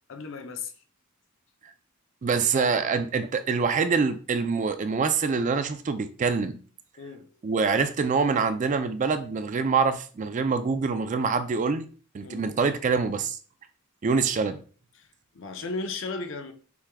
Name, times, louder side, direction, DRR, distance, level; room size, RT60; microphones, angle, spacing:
voice 1, 0.1-0.7 7.0-7.3 12.2-12.4 15.0-15.1 15.3-16.5, left 3 dB, 60° left, 0.6 m, -35 dB
voice 2, 2.2-6.6 7.4-11.9 12.1-13.4 14.0-14.6, right 5 dB, 35° right, 0.4 m, -25 dB
5.9 x 3.5 x 2.2 m
head